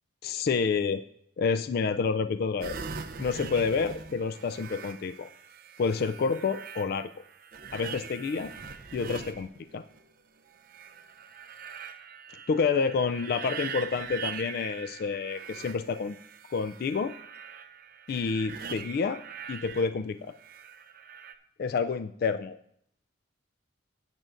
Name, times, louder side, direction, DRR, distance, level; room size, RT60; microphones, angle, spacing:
voice 1, 0.2-1.0 1.4-2.8 3.2-5.3 5.8-7.1 7.7-8.5 8.9-9.8 12.5-16.2 16.5-17.1 18.1-19.2 19.5-20.3 21.6-22.6, left 5 dB, 50° left, 11 dB, 0.3 m, -29 dB
sound 1, 2.6-10.0 10.5-19.9 20.4-21.3, right 6 dB, 45° right, 0.6 m, -42 dB
15.0 x 8.9 x 2.5 m, 0.70 s
head